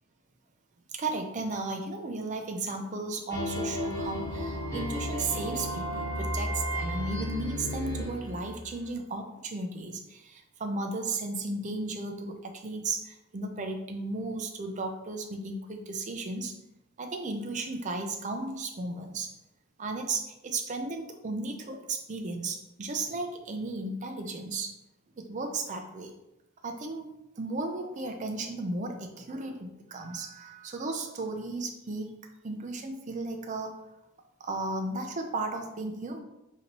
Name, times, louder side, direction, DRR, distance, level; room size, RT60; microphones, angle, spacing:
voice 1, 0.9-16.6 17.0-19.3 19.8-24.7 25.2-26.1 26.6-27.1 27.4-32.1 32.4-33.7 34.4-36.2, right 3 dB, 35° right, 4 dB, 0.5 m, -35 dB
sound 1, 3.3-8.9, equal, 15° left, 0.9 m, -33 dB
5.2 x 2.7 x 2.9 m, 0.91 s
head